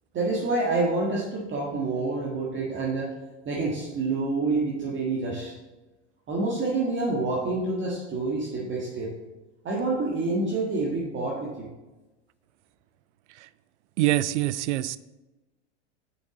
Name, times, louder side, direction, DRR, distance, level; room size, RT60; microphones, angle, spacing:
voice 1, 0.1-3.1 3.4-5.5 6.3-9.1 9.6-11.7, right 3 dB, 35° right, -4 dB, 1.7 m, -27 dB
voice 2, 14.0-15.0, right 15 dB, 80° right, 17 dB, 0.5 m, -25 dB
6.5 x 6.2 x 3.8 m, 1.1 s
hypercardioid pair, 100°, 35 cm